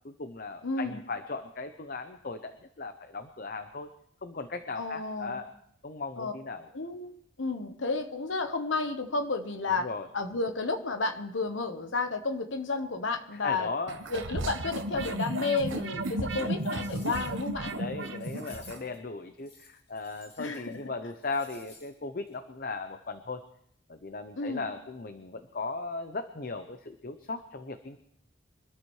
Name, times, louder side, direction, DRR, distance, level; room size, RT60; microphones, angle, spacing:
voice 1, 0.0-3.9 4.2-5.5 5.8-6.7 9.8-10.1 13.4-14.0 16.4-16.5 17.7-23.4 23.9-28.0, left 3 dB, 45° left, 9 dB, 0.7 m, -37 dB
voice 2, 0.6-1.0 4.8-5.4 6.2-6.3 6.7-7.1 7.4-13.7 14.1-17.7 20.4-20.9 24.4-24.7, left 3 dB, 75° left, 7 dB, 1.1 m, -32 dB
sound 1, 13.9-18.8, right 1 dB, 75° right, 1.1 m, -34 dB
sound 2, 16.0-16.1 16.5-17.5 18.1-19.0 19.4-20.8 21.1-21.9 22.3-22.4, left 3 dB, 30° left, 2.5 m, -54 dB
24.5 x 13.5 x 3.2 m, 0.68 s
head